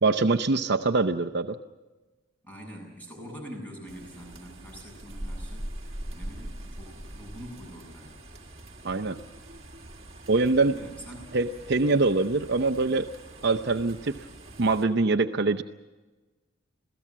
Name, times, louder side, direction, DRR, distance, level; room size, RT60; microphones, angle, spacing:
voice 1, 0.0-1.6 8.8-9.2 10.3-10.8 11.3-13.1 13.4-14.2 14.6-15.6, right 3 dB, 55° right, 6 dB, 0.7 m, -24 dB
voice 2, 2.4-5.7 6.1-8.2 10.6-11.3, equal, 10° left, 0 dB, 7.6 m, -44 dB
sound 1, 3.9-14.8, right 1 dB, 30° right, 2.1 m, -42 dB
27.5 x 17.0 x 7.4 m, 1.2 s
head